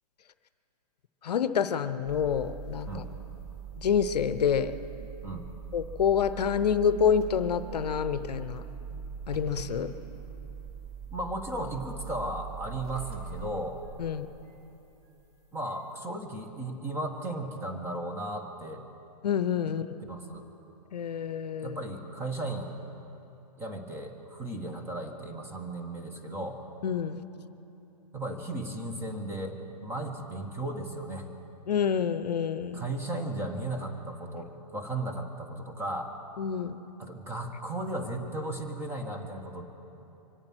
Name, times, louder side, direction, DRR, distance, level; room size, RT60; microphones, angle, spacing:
voice 1, 1.2-3.0 3.8-4.7 5.7-8.6 9.3-9.9 14.0-14.3 19.2-20.0 20.9-21.8 26.8-27.2 31.7-32.8 36.4-36.8, left 7 dB, 70° left, 12 dB, 0.7 m, -27 dB
sound 1, 2.1-14.7, right 6 dB, 30° right, 3.9 m, -42 dB
voice 2, 11.1-13.8 15.5-18.8 20.1-20.4 21.6-22.8 23.6-26.6 28.1-31.3 32.7-36.1 37.0-39.7, right 1 dB, 10° right, 4 dB, 1.5 m, -35 dB
24.5 x 8.8 x 6.1 m, 2.9 s
hypercardioid pair, 130°, 21 cm